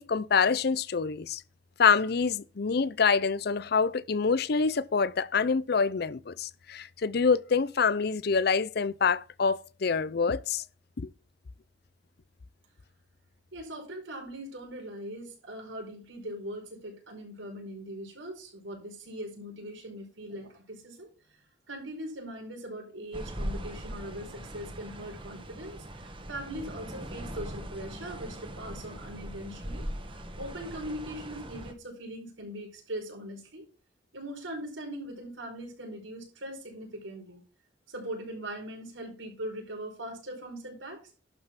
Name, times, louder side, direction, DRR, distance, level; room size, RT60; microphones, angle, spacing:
voice 1, 0.0-1.4 1.8-10.6 11.0-11.1, left 5 dB, 55° left, 0.5 m, -26 dB
voice 2, 13.5-21.1 21.7-33.6 34.1-37.4 37.9-41.2, right 1 dB, 85° right, 5.0 m, -41 dB
sound 1, 23.1-31.7, right 1 dB, 25° right, 1.5 m, -40 dB
11.5 x 5.4 x 5.8 m
head